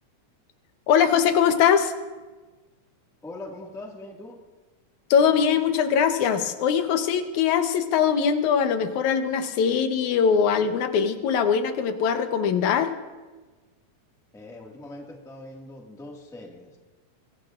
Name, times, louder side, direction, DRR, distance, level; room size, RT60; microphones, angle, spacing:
voice 1, 0.9-1.9 5.1-12.9, left 7 dB, 75° left, 7 dB, 2.3 m, -21 dB
voice 2, 3.2-4.4 14.3-16.8, left 2 dB, ahead, -1 dB, 1.0 m, -41 dB
25.0 x 22.0 x 2.5 m, 1.3 s
omnidirectional pair, 3.5 m